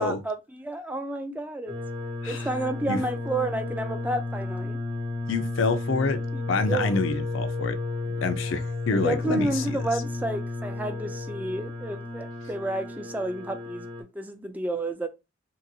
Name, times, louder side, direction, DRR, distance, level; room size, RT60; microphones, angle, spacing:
voice 1, 0.0-1.8 2.3-4.8 6.3-6.4 6.7-7.0 8.9-15.1, right 1 dB, 10° right, 0.3 m, -31 dB
sound 1, 1.7-14.0, left 2 dB, 60° right, 1.0 m, -33 dB
voice 2, 5.3-6.2 6.5-7.8 8.1-9.8, left 3 dB, 70° left, 0.5 m, -27 dB
3.0 x 2.8 x 2.6 m
head